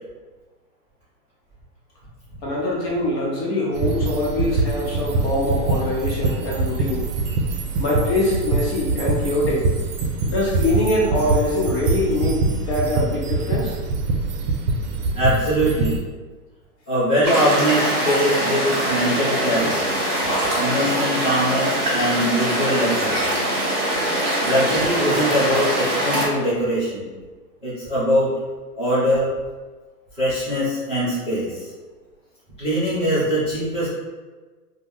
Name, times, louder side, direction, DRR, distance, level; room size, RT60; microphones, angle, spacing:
voice 1, 2.4-7.0 7.8-9.7 10.2-12.4 12.7-13.8, left 1 dB, 40° left, -4 dB, 0.9 m, -23 dB
sound 1, 3.7-16.0, right 3 dB, 70° right, 0.6 m, -24 dB
voice 2, 15.1-16.0 16.9-19.9 20.6-23.2 24.4-27.1 27.6-28.3 28.8-29.3 30.2-31.7 32.6-33.9, equal, 5° left, -21 dB, 0.3 m, -22 dB
sound 2, 17.2-26.3, right 1 dB, 20° right, 1.0 m, -22 dB
2.4 x 2.2 x 3.4 m, 1.4 s
hypercardioid pair, 140°, 48 cm